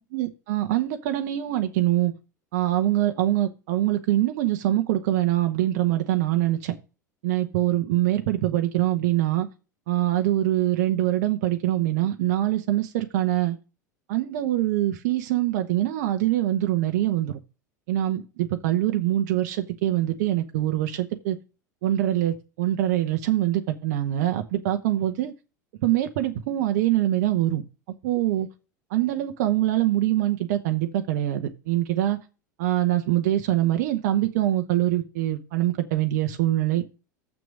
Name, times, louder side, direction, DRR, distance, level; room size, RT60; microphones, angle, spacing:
voice 1, 0.1-2.1 2.5-6.7 7.2-9.5 9.9-13.6 14.1-17.4 17.9-21.4 21.8-25.3 25.8-27.6 28.0-28.5 28.9-32.2 32.6-36.8, right 14 dB, 60° right, 1.0 m, -24 dB
7.6 x 6.2 x 6.2 m
hypercardioid pair, 80°, 10 cm